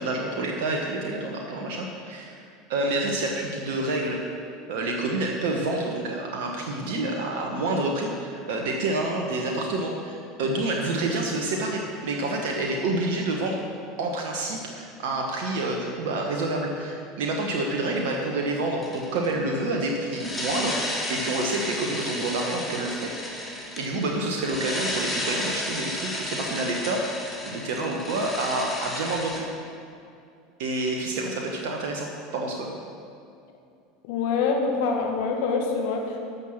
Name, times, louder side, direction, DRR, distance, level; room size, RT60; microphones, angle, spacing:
voice 1, 0.0-2.4 2.7-4.3 4.7-13.6 14.0-20.8 21.1-29.5 30.6-32.7, right 2 dB, 65° right, 1 dB, 1.1 m, -28 dB
sound 1, 18.8-19.3 20.1-29.4, left 1 dB, 15° left, 2.4 m, -33 dB
voice 2, 34.1-36.2, left 4 dB, 60° left, 1 dB, 1.7 m, -25 dB
12.0 x 6.6 x 7.3 m, 2.4 s
hypercardioid pair, 80°, 0 cm